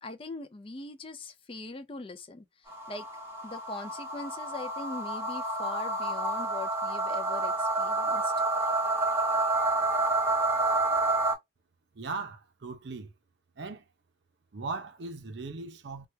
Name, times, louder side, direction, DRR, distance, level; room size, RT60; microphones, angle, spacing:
voice 1, 0.0-2.4 2.9-3.1 3.4-8.3, left 3 dB, 30° left, 0.4 m, -41 dB
sound 1, 2.7-11.3, right 2 dB, 10° right, 0.8 m, -29 dB
voice 2, 11.9-13.1 13.6-13.8 14.5-16.1, right 4 dB, 60° right, 0.6 m, -38 dB
2.9 x 2.3 x 3.2 m
head